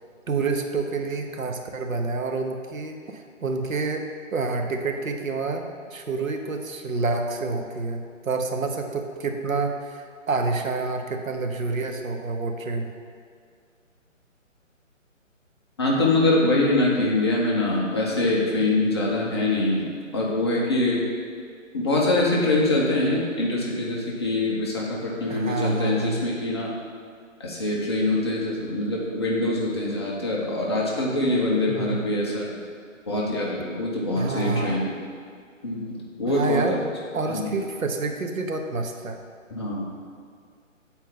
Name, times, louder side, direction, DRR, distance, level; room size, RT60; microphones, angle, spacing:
voice 1, 0.3-12.9 25.3-26.2 31.7-32.0 34.2-34.9 36.3-39.2, right 3 dB, 90° right, 4 dB, 0.9 m, -28 dB
voice 2, 15.8-19.9 20.1-21.0 21.7-26.7 27.4-32.5 33.1-34.9 35.6-36.6 37.3-37.5 39.5-39.9, left 2 dB, 20° left, -4 dB, 0.6 m, -24 dB
7.9 x 4.4 x 3.8 m, 2.2 s
figure-of-eight pair, 155°, 39 cm